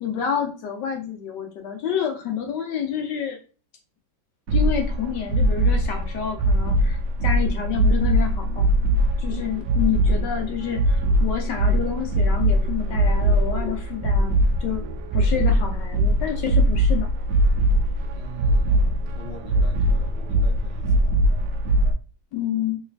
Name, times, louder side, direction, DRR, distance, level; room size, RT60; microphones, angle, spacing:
voice 1, 0.0-3.4 4.5-8.7 9.2-14.8 15.1-17.1 22.3-22.8, left 8 dB, 75° left, 3 dB, 1.2 m, -28 dB
sound 1, 4.5-21.9, right 1 dB, 70° right, 1.0 m, -21 dB
voice 2, 18.1-21.5, right 2 dB, 45° left, 2 dB, 0.9 m, -42 dB
3.1 x 3.1 x 3.3 m, 0.36 s
omnidirectional pair, 2.0 m